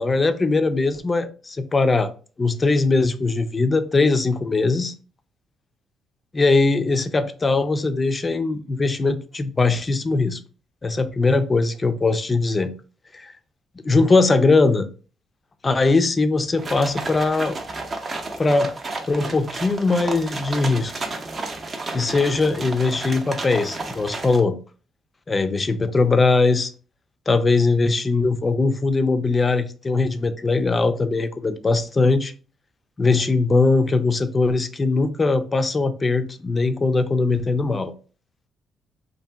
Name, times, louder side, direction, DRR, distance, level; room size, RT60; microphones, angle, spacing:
voice 1, 0.0-2.1 2.4-4.9 6.3-10.4 10.8-12.7 13.1-13.3 13.8-14.9 15.6-17.5 18.4-18.7 19.1-20.9 21.9-24.6 25.3-26.7 27.3-32.3 33.0-37.9, left 3 dB, 30° left, 0.3 m, -20 dB
sound 1, 16.6-24.4, right 3 dB, 40° right, 0.5 m, -32 dB
2.7 x 2.5 x 2.3 m
cardioid pair, 90°, 0 cm